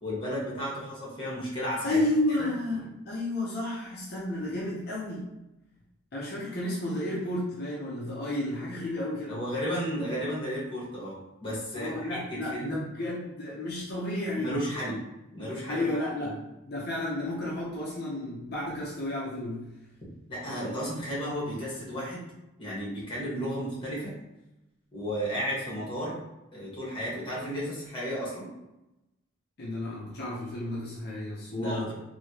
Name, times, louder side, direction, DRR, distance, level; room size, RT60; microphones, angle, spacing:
voice 1, 0.0-2.0 2.4-2.5 9.3-12.8 14.4-15.0 15.3-15.8 16.2-16.4 20.3-22.2 22.6-24.1 24.9-26.2 26.5-28.5 31.6-31.9, equal, 25° left, -7 dB, 1.4 m, -33 dB
voice 2, 1.8-5.3 6.1-9.4 11.7-14.5 15.7-16.4 16.7-19.7 29.6-31.9, left 1 dB, 50° left, -5 dB, 0.7 m, -32 dB
3.2 x 2.8 x 2.8 m, 0.96 s
head